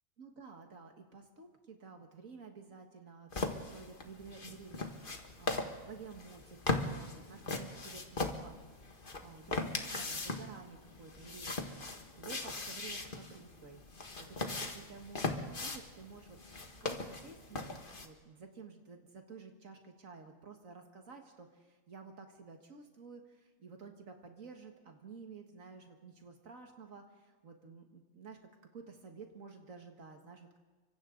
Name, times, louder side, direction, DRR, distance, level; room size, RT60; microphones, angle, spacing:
voice 1, 0.2-8.9 9.2-16.4 16.8-28.4 28.7-30.6, right 5 dB, 75° right, 3 dB, 2.1 m, -52 dB
sound 1, 3.3-18.1, left 2 dB, 40° left, 1.8 m, -39 dB
30.0 x 25.0 x 3.9 m, 1.3 s
omnidirectional pair, 1.4 m